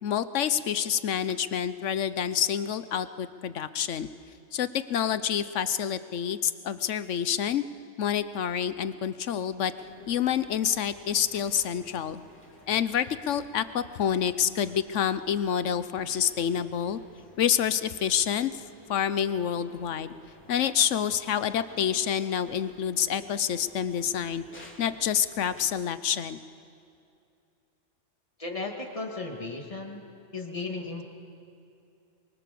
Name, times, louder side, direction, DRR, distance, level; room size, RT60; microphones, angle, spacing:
voice 1, 0.0-4.1 4.5-7.6 8.0-9.7 10.1-12.2 12.7-17.0 17.4-20.1 20.5-26.4, left 9 dB, 75° left, 13 dB, 1.1 m, -28 dB
sound 1, 9.7-25.6, left 1 dB, 10° left, 2.9 m, -54 dB
voice 2, 28.4-30.0 30.3-31.0, left 3 dB, 25° left, 1 dB, 2.4 m, -35 dB
25.0 x 22.5 x 6.9 m, 2.6 s
omnidirectional pair, 1.3 m